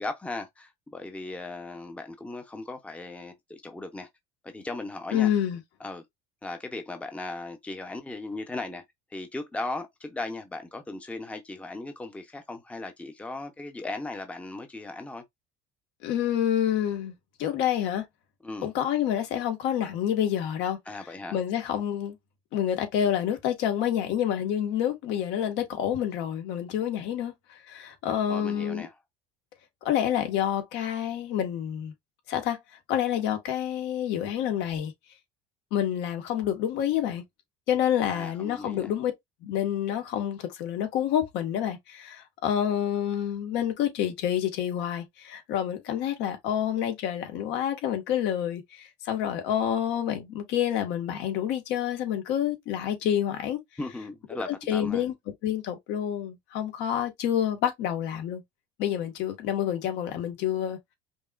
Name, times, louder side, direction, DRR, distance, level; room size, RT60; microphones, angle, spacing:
voice 1, 0.0-4.1 4.4-5.3 5.8-6.0 6.4-8.8 9.1-15.2 18.4-18.7 20.9-21.4 28.3-28.9 38.1-38.9 53.8-55.0, left 2 dB, 5° left, 0.7 m, -37 dB
voice 2, 5.1-5.6 16.0-17.1 17.4-18.0 18.6-20.8 21.3-22.1 22.5-28.9 29.8-31.9 32.3-32.6 32.9-34.9 35.7-37.2 37.7-39.1 39.4-53.6 54.5-55.1 55.4-58.4 58.8-60.8, left 10 dB, 70° left, 1.5 m, -28 dB
5.3 x 2.9 x 2.4 m
cardioid pair, 125°, 18 cm